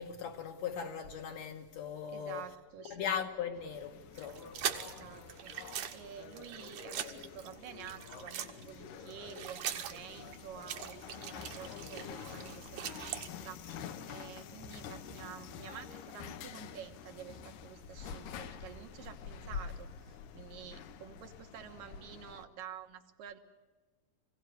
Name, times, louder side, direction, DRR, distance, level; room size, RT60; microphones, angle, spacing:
voice 1, 0.0-2.4 2.8-5.1, left 7 dB, 65° left, 2.2 m, -39 dB
voice 2, 2.1-3.2 4.8-23.4, right 9 dB, 80° right, 3.0 m, -50 dB
sound 1, 3.5-22.5, left 7 dB, 85° left, 2.7 m, -47 dB
sound 2, 4.1-8.7 9.0-13.3, right 9 dB, 65° right, 2.1 m, -42 dB
24.5 x 16.5 x 9.6 m
omnidirectional pair, 3.8 m